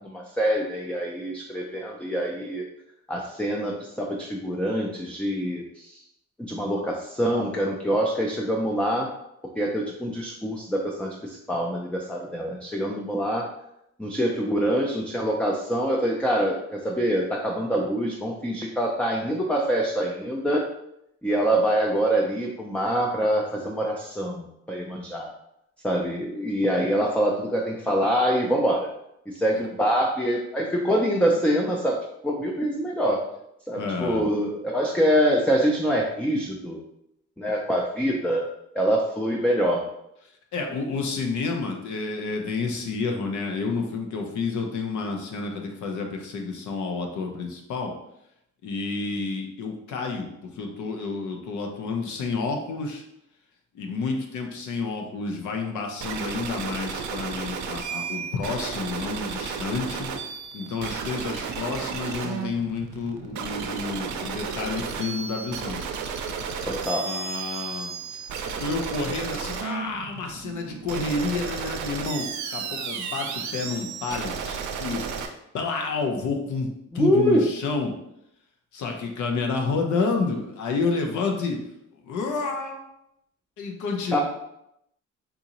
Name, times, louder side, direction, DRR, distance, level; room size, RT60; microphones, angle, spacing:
voice 1, 0.0-2.6 3.1-6.0 6.5-9.1 9.6-13.5 14.0-20.6 21.2-25.3 25.8-28.9 29.3-33.2 33.7-36.8 37.4-38.5 38.7-39.8 66.7-67.1 76.9-77.5 84.1-84.2, equal, 5° left, -1 dB, 0.4 m, -25 dB
voice 2, 33.8-34.2 40.5-47.9 48.6-53.0 53.7-60.1 60.5-65.8 67.0-67.9 68.6-75.1 75.5-76.7 76.9-77.9 78.7-81.6 82.0-82.8 83.6-84.2, left 4 dB, 75° left, 3 dB, 0.7 m, -29 dB
sound 1, 56.0-75.3, right 6 dB, 70° right, 0.5 m, -33 dB
3.7 x 2.7 x 2.9 m, 0.79 s
cardioid pair, 90°, 30 cm